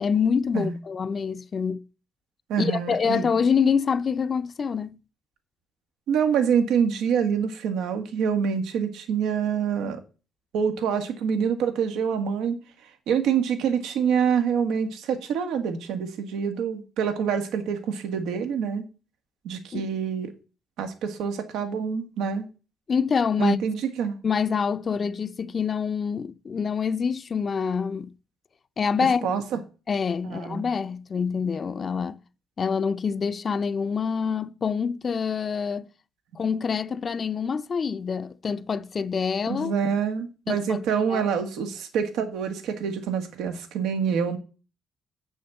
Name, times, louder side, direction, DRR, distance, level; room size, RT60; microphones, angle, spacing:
voice 1, 0.0-1.8 2.6-5.0 19.7-19.8 22.9-23.6 24.2-28.1 28.8-29.3 29.9-32.2 32.6-35.9 36.4-39.7 40.5-40.8 41.1-41.2, left 6 dB, 45° left, 0.6 m, -26 dB
voice 2, 2.5-3.3 6.1-10.0 10.5-12.6 13.1-18.8 19.4-20.3 20.8-22.4 23.4-24.2 29.2-29.6 30.2-30.7 39.5-44.4, right 7 dB, 90° right, 1.8 m, -26 dB
8.0 x 6.4 x 7.0 m
cardioid pair, 90°, 0 cm